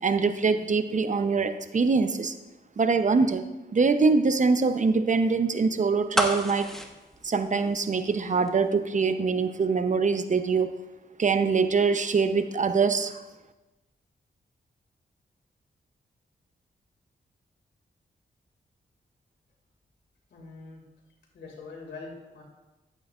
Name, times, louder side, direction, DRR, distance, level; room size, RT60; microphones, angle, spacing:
voice 1, 0.0-2.3 2.8-3.4 3.7-6.7 7.2-10.7 11.2-13.2, right 4 dB, 45° right, 9 dB, 0.7 m, -24 dB
sound 1, 6.1-8.2 8.5-8.6, equal, ahead, 1.2 m, -29 dB
voice 2, 20.3-20.8 21.3-22.4, left 3 dB, 85° left, 0 dB, 2.3 m, -43 dB
10.5 x 9.0 x 2.5 m, 1.1 s
cardioid pair, 55°, 18 cm